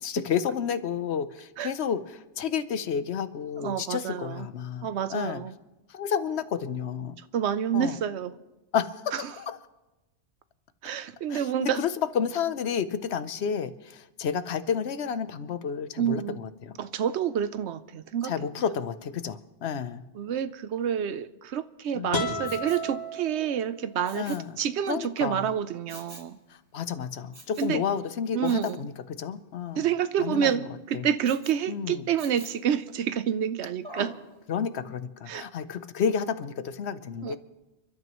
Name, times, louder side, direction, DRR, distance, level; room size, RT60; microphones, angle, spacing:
voice 1, 0.0-5.4 5.9-7.2 7.7-8.0 8.7-9.6 11.3-16.7 18.2-20.0 21.9-22.2 24.1-24.6 24.9-25.5 26.7-29.9 30.2-30.6 30.9-31.1 31.7-32.1 34.5-37.4, left 7 dB, 70° left, 13 dB, 1.0 m, -31 dB
voice 2, 3.6-4.5 4.8-5.5 7.3-8.3 9.1-9.2 10.8-11.8 16.0-16.4 16.8-18.3 20.2-26.4 27.6-27.8 28.3-28.8 29.8-34.1 35.3-35.4 37.2-37.4, right 9 dB, 75° right, 13 dB, 0.9 m, -28 dB
sound 1, 22.1-24.0, left 1 dB, 90° left, 3.4 m, -33 dB
Respiratory sounds, 22.4-22.9 24.0-24.5 25.9-26.3 27.3-27.8 28.4-28.8 31.2-31.6 32.2-32.7 33.8-34.2 34.7-34.8, right 1 dB, 25° right, 1.4 m, -45 dB
29.5 x 12.5 x 3.0 m, 1.0 s
omnidirectional pair, 1.2 m